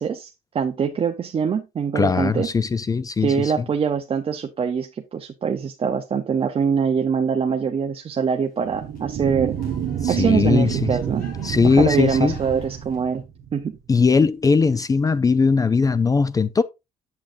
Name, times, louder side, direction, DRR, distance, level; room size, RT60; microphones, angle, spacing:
voice 1, 0.0-2.5 3.2-9.6 10.1-11.3 11.6-13.2 13.5-13.7, right 6 dB, 35° right, 0.7 m, -23 dB
voice 2, 1.9-3.7 10.0-11.0 11.4-12.3 13.9-16.6, left 4 dB, 20° left, 0.4 m, -19 dB
sound 1, 8.1-13.2, left 3 dB, 60° left, 5.0 m, -50 dB
sound 2, 8.6-13.6, right 9 dB, 60° right, 1.3 m, -28 dB
8.6 x 7.6 x 2.6 m
cardioid pair, 110°, 17 cm